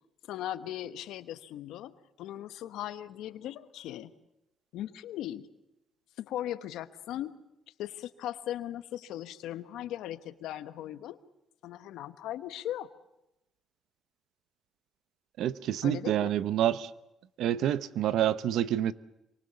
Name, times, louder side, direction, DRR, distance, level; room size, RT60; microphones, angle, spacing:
voice 1, 0.3-1.9 2.2-4.1 4.7-5.5 6.2-7.4 7.8-11.2 11.6-12.9 15.8-16.3, left 12 dB, 90° left, 1.2 m, -38 dB
voice 2, 15.4-16.9 17.4-18.9, right 11 dB, 80° right, 0.9 m, -28 dB
26.5 x 24.0 x 7.0 m
cardioid pair, 90°, 0 cm